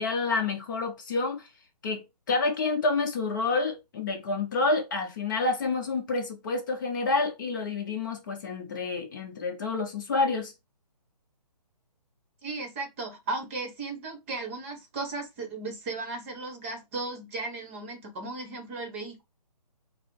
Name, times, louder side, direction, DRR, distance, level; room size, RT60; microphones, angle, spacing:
voice 1, 0.0-1.5 1.8-10.5, left 3 dB, 30° left, 0.8 m, -28 dB
voice 2, 12.4-19.2, right 3 dB, 20° right, 0.9 m, -36 dB
4.9 x 2.0 x 4.7 m
hypercardioid pair, 160°, 21 cm